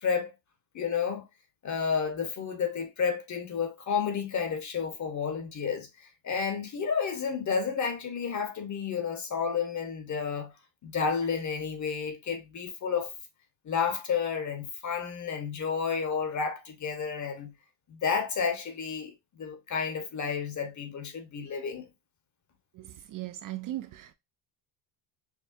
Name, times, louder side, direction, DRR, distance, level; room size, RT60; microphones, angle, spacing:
voice 1, 0.0-0.3 0.7-1.2 1.6-5.9 6.2-10.5 10.8-13.1 13.6-17.5 17.9-21.9, left 6 dB, 40° left, 1.2 m, -31 dB
voice 2, 22.7-24.1, right 15 dB, 50° right, 0.4 m, -38 dB
6.3 x 2.3 x 2.6 m
cardioid pair, 125°, 45 cm